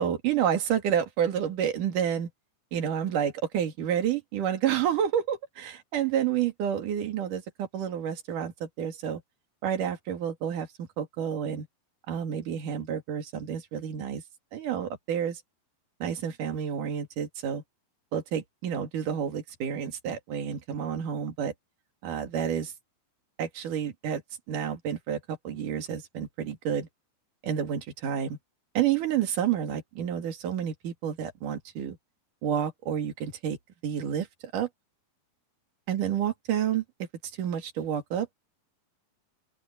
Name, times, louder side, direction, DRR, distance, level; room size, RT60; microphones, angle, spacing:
voice 1, 0.0-2.3 2.7-9.2 9.6-11.7 12.1-14.2 14.5-15.4 16.0-17.6 18.1-21.5 22.0-22.7 23.4-24.2 24.5-26.9 27.4-28.4 28.7-32.0 32.4-33.6 33.8-34.3 34.5-34.7 35.9-36.8 37.4-38.3, right 9 dB, 50° right, 3.5 m, -29 dB
open air
omnidirectional pair, 5.3 m